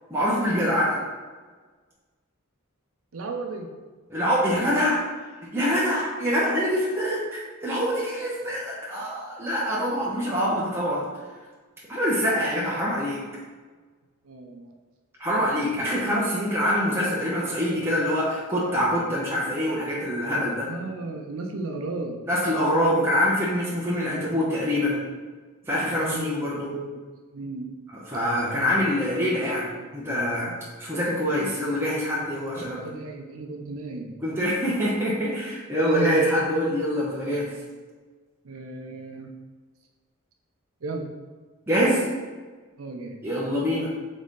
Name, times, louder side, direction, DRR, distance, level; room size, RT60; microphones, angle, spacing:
voice 1, 0.1-1.0 4.1-5.0 5.5-11.1 11.9-13.2 15.2-20.7 22.3-25.0 25.7-26.7 27.9-30.5 30.8-32.8 34.2-37.5 41.7-42.0 43.2-43.9, equal, 10° right, -7 dB, 0.7 m, -25 dB
voice 2, 3.1-3.7 12.4-12.7 14.2-14.7 15.5-15.7 20.7-22.2 24.1-24.5 26.0-26.3 26.6-27.0 27.3-27.8 28.6-28.7 32.7-34.2 35.9-36.4 38.4-39.3 40.8-41.1 42.8-43.2, right 3 dB, 70° right, 2 dB, 0.6 m, -35 dB
3.9 x 3.6 x 3.7 m, 1.4 s
head